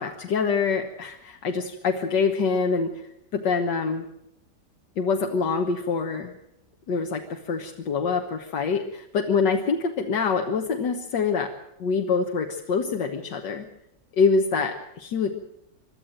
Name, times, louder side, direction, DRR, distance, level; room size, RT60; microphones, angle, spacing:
voice 1, 0.0-3.0 3.3-4.0 5.0-6.3 6.9-11.5 11.8-13.7 14.1-15.3, left 5 dB, 80° left, 4 dB, 1.8 m, -25 dB
22.5 x 13.0 x 8.9 m, 0.83 s
omnidirectional pair, 1.9 m